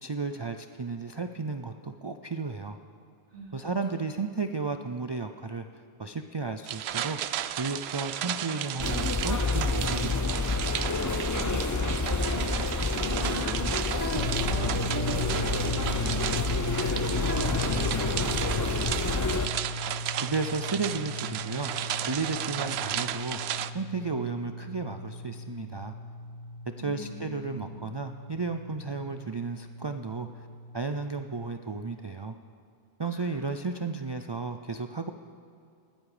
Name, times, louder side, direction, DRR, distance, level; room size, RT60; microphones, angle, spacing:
voice 1, 0.0-2.8 3.5-7.2 7.6-10.4 20.2-21.7 22.1-23.4 23.7-25.9 26.8-30.5 30.7-32.3 33.0-35.1, right 4 dB, 35° right, 7 dB, 0.4 m, -33 dB
sound 1, 6.7-23.7, right 10 dB, 85° right, 0.8 m, -34 dB
sound 2, 8.8-19.5, left 3 dB, 25° left, 0.5 m, -29 dB
voice 2, 11.1-19.4 26.8-27.8 33.1-33.5, equal, 60° right, -3 dB, 3.5 m, -39 dB
sound 3, 14.2-32.0, left 1 dB, 70° left, 0.8 m, -38 dB
19.5 x 14.5 x 5.0 m, 2.5 s
omnidirectional pair, 1.0 m